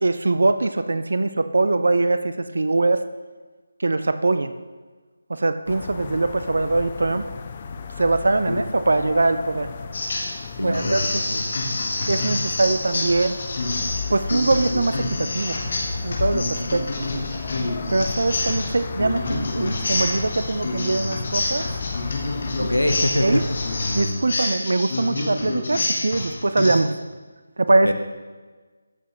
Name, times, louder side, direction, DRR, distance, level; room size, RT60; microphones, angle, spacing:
voice 1, 0.0-3.0 3.8-4.5 5.3-7.3 8.0-9.7 10.6-11.2 12.1-13.3 14.1-15.6 16.0-16.9 17.9-21.7 23.2-23.4 23.9-27.0 27.6-27.9, right 2 dB, 55° right, 11 dB, 0.4 m, -22 dB
sound 1, 5.7-24.0, left 5 dB, 30° left, 0.5 m, -34 dB
sound 2, 9.9-10.4 10.7-26.8, left 2 dB, 45° left, 1.3 m, -28 dB
voice 2, 10.6-11.4 22.6-23.4 27.8-27.9, left 1 dB, 80° left, 6 dB, 0.7 m, -24 dB
13.5 x 6.1 x 2.9 m, 1.4 s
figure-of-eight pair, 155°, 0 cm